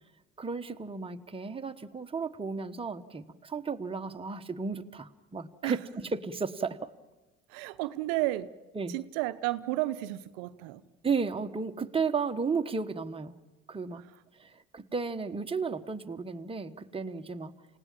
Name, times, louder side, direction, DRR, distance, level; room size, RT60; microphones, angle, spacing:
voice 1, 0.4-6.9 8.7-9.0 11.0-13.4 13.7-14.0 14.4-17.5, right 5 dB, 15° right, 1.2 m, -34 dB
voice 2, 7.5-8.5 8.9-10.8, right 17 dB, 60° right, 0.8 m, -32 dB
29.0 x 17.5 x 7.5 m
hypercardioid pair, 65°, 37 cm